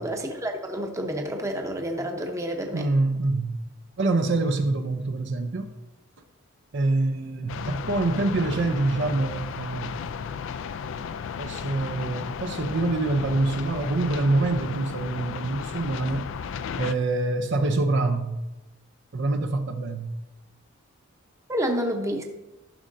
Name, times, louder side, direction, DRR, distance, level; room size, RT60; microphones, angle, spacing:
voice 1, 0.0-2.9 21.5-22.2, equal, 15° right, 3 dB, 0.8 m, -29 dB
voice 2, 2.7-3.6 4.0-5.7 6.7-10.3 11.4-16.5 16.8-18.4 19.1-20.1, right 2 dB, 55° right, 5 dB, 0.6 m, -26 dB
sound 1, 7.5-16.9, left 6 dB, 60° left, 0.3 m, -34 dB
13.5 x 6.2 x 2.6 m, 1.0 s
head